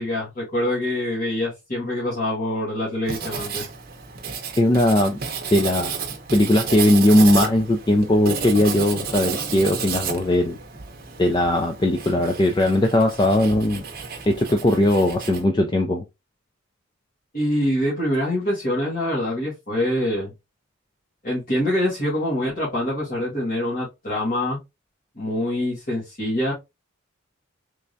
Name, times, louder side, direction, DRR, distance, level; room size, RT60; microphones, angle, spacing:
voice 1, 0.0-3.7 17.3-20.3 21.2-24.6 25.1-26.5, left 1 dB, 45° left, 1.5 m, -25 dB
Writing, 3.1-15.4, right 5 dB, 45° right, 0.7 m, -32 dB
voice 2, 4.6-5.2 5.5-6.0 6.3-10.6 11.2-13.8 14.3-16.0, left 1 dB, 20° left, 0.3 m, -19 dB
3.4 x 3.2 x 2.6 m
head